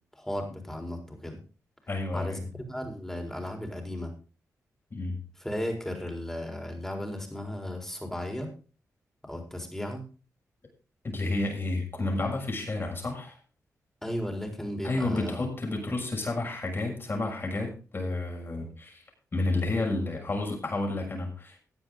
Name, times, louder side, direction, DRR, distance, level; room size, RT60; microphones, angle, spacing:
voice 1, 0.1-1.4 2.1-4.1 5.4-8.5 9.2-10.1 14.0-15.4, left 1 dB, 5° left, 3 dB, 4.3 m, -35 dB
voice 2, 1.9-2.4 4.9-5.2 11.0-13.4 14.8-19.0 19.3-21.6, left 2 dB, 40° left, 1 dB, 6.6 m, -31 dB
15.5 x 9.9 x 4.0 m, 0.35 s
cardioid pair, 70°, 6 cm